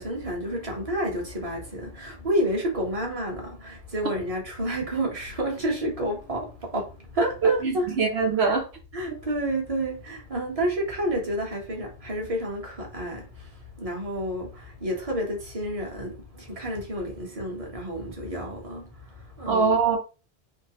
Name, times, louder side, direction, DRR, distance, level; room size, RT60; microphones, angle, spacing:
voice 1, 0.0-7.9 8.9-19.8, right 1 dB, 35° right, 1.4 m, -30 dB
voice 2, 7.4-8.7 19.5-20.0, right 5 dB, 75° right, 1.0 m, -22 dB
4.3 x 3.0 x 3.0 m
omnidirectional pair, 1.1 m